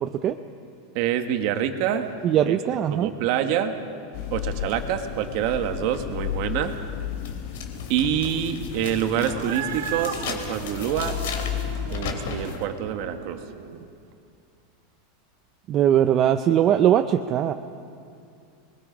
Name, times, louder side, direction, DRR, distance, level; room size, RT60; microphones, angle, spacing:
voice 1, 0.0-0.4 2.2-3.1 15.7-17.5, right 10 dB, 25° right, 8 dB, 0.5 m, -20 dB
voice 2, 0.9-2.1 2.5-2.6 2.9-3.8 4.3-6.7 7.9-11.2 11.9-13.4, right 9 dB, 45° right, 7 dB, 1.3 m, -26 dB
sound 1, 4.1-12.6, left 10 dB, 45° left, 1.0 m, -33 dB
sound 2, 6.6-6.7 7.2-12.6, left 6 dB, 70° left, 2.9 m, -37 dB
Cat, 9.2-13.9, right 9 dB, 90° right, 1.4 m, -36 dB
28.0 x 21.0 x 5.1 m, 2.4 s
supercardioid pair, 175°, 0 cm